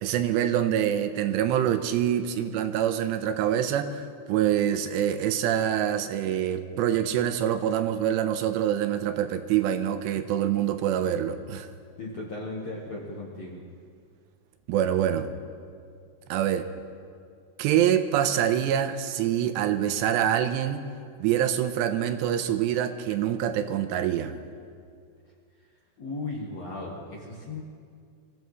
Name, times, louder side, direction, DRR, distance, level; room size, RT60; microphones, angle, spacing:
voice 1, 0.0-11.7 14.7-15.3 16.3-16.7 17.6-20.9 21.2-24.3, right 10 dB, 85° right, 8 dB, 2.8 m, -25 dB
voice 2, 12.0-13.6 26.0-27.6, left 2 dB, 60° left, -3 dB, 1.7 m, -36 dB
25.0 x 15.5 x 3.2 m, 2.3 s
omnidirectional pair, 5.0 m